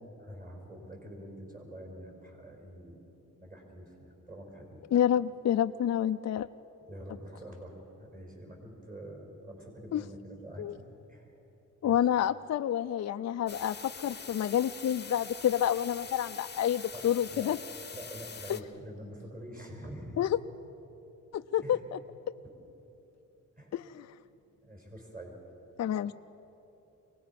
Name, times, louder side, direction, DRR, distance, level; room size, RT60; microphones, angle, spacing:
voice 1, 0.2-3.0 3.4-4.8 6.9-11.3 11.8-12.1 16.9-17.5 17.9-20.2 21.6-21.8 23.6-23.7 24.6-25.4 25.9-26.0, right 1 dB, 25° right, 1 dB, 5.1 m, -46 dB
voice 2, 4.9-6.5 9.9-10.0 10.6-10.7 11.8-17.6 18.5-18.6 20.2-20.4 21.3-22.0 23.7-24.1 25.8-26.1, left 10 dB, 55° left, 9 dB, 0.5 m, -28 dB
sound 1, 13.5-18.6, left 5 dB, 30° left, 0.9 m, -44 dB
24.0 x 19.0 x 5.9 m, 3.0 s
cardioid pair, 90°, 32 cm